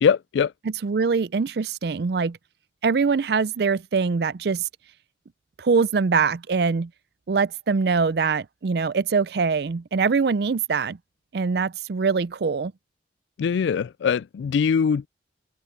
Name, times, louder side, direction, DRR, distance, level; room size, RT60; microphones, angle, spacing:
voice 1, 0.0-0.5 13.4-15.1, left 6 dB, 70° left, 0.3 m, -22 dB
voice 2, 0.6-2.4 2.8-4.7 5.6-6.9 7.3-11.0 11.3-12.7, right 5 dB, 55° right, 0.4 m, -23 dB
head